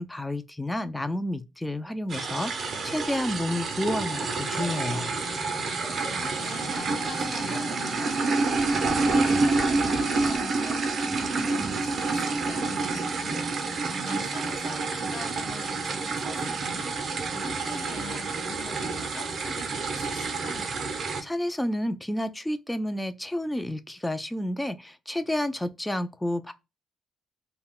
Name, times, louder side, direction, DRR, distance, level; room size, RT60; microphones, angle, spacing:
voice 1, 0.0-5.1 21.2-26.5, left 1 dB, 10° left, 0.3 m, -30 dB
sound 1, 2.1-21.2, right 3 dB, 55° right, 0.5 m, -28 dB
sound 2, 4.1-10.4, left 3 dB, 40° left, 1.0 m, -41 dB
voice 2, 6.0-20.7, left 2 dB, 70° left, 1.0 m, -42 dB
2.2 x 2.1 x 3.4 m
cardioid pair, 90°, 0 cm